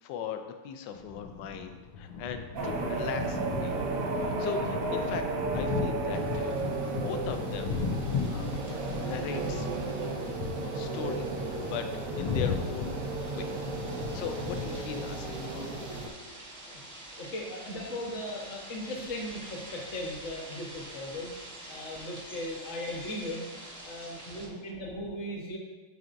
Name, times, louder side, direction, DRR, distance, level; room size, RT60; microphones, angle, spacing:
voice 1, 0.0-3.7 4.2-5.2 5.5-6.6 7.0-7.8 8.3-8.5 9.0-9.7 10.3-11.9 12.2-13.0 13.3-13.5 14.1-16.0, left 8 dB, 75° left, 7 dB, 1.0 m, -39 dB
sound 1, 0.9-15.2, left 5 dB, 90° left, 1.6 m, -37 dB
sound 2, 2.6-16.1, right 3 dB, 60° right, 0.9 m, -33 dB
sound 3, 6.1-24.5, right 1 dB, 20° right, 0.5 m, -48 dB
voice 2, 7.7-8.4 13.6-14.3 16.4-16.7 24.1-24.9, right 5 dB, 85° right, 3 dB, 1.5 m, -53 dB
voice 3, 17.2-21.3 21.7-23.5 23.8-25.6, left 1 dB, 40° left, -1 dB, 1.2 m, -38 dB
11.0 x 4.6 x 2.6 m, 1.2 s
omnidirectional pair, 2.4 m